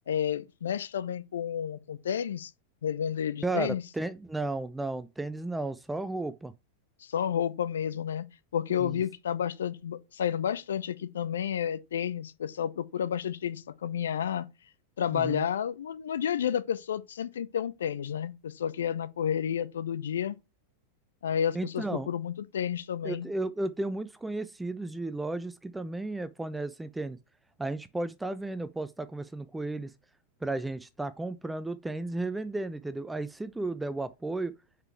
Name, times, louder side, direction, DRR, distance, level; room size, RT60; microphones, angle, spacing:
voice 1, 0.1-2.5 2.8-3.8 7.0-8.2 8.5-14.5 15.0-20.4 21.2-23.3, left 9 dB, 65° left, 0.5 m, -31 dB
voice 2, 3.4-6.5 8.8-9.0 15.1-15.5 21.5-22.1 23.0-27.2 27.6-29.9 30.4-34.5, right 2 dB, 5° right, 0.4 m, -34 dB
4.8 x 4.7 x 4.6 m
figure-of-eight pair, 90°, 0 cm